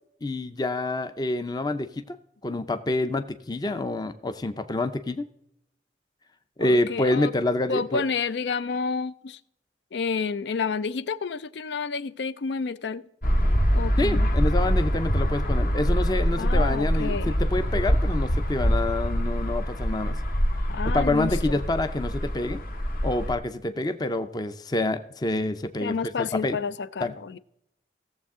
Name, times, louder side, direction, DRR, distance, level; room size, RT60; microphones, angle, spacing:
voice 1, 0.2-2.2 2.4-5.3 6.6-8.0 14.0-20.2 20.8-22.6 23.0-26.6 27.0-27.1, left 2 dB, 25° left, 0.5 m, -27 dB
voice 2, 6.6-7.3 7.7-9.4 9.9-13.0 13.7-14.3 16.4-17.3 20.7-21.6 25.8-27.4, left 5 dB, 75° left, 0.5 m, -30 dB
sound 1, 13.2-23.3, equal, 50° left, 1.1 m, -24 dB
17.0 x 7.3 x 3.6 m
head